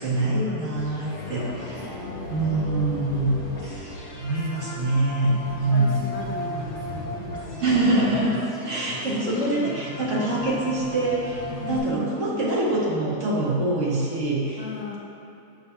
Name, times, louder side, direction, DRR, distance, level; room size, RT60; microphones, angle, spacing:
voice 1, 0.0-1.9 2.3-3.3 3.6-6.0 7.6-8.3 8.6-14.6, right 2 dB, 50° right, -6 dB, 1.4 m, -25 dB
sound 1, 0.8-11.8, left 1 dB, 60° left, 1.8 m, -35 dB
voice 2, 1.2-2.8 4.2-4.9 5.5-8.2 9.0-9.8 11.5-12.4 14.6-15.0, left 5 dB, 80° left, -3 dB, 0.5 m, -37 dB
7.0 x 6.9 x 2.2 m, 2.9 s
omnidirectional pair, 1.8 m